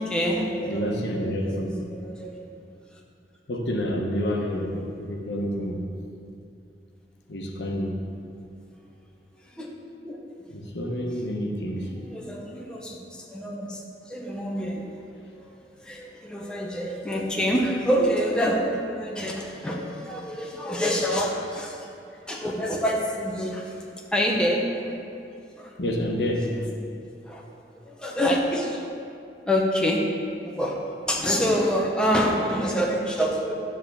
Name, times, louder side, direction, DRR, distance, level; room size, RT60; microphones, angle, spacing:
voice 1, 0.0-1.0 1.4-1.5 1.9-2.5 9.5-9.7 10.0-10.2 11.7-14.9 15.8-23.7 24.1-25.1 25.6-25.7 27.3-27.4 27.7-28.8 29.5-30.0 30.4-33.5, equal, 5° left, -2 dB, 0.8 m, -27 dB
voice 2, 0.7-1.9 3.5-5.8 7.3-8.0 10.5-11.9 25.8-26.5, equal, 80° left, 1 dB, 1.0 m, -28 dB
10.5 x 3.7 x 7.0 m, 2.5 s
head